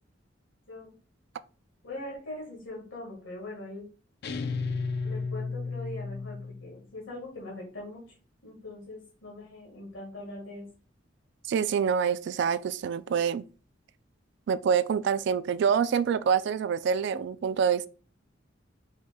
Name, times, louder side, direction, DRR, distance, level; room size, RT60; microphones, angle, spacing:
voice 1, 1.8-3.9 5.0-8.0 8.4-10.6, left 1 dB, 85° left, 1.7 m, -41 dB
sound 1, 4.2-6.8, left 4 dB, 60° left, 0.5 m, -33 dB
voice 2, 11.5-13.4 14.5-17.9, right 7 dB, 65° right, 0.3 m, -26 dB
4.7 x 4.4 x 2.2 m
head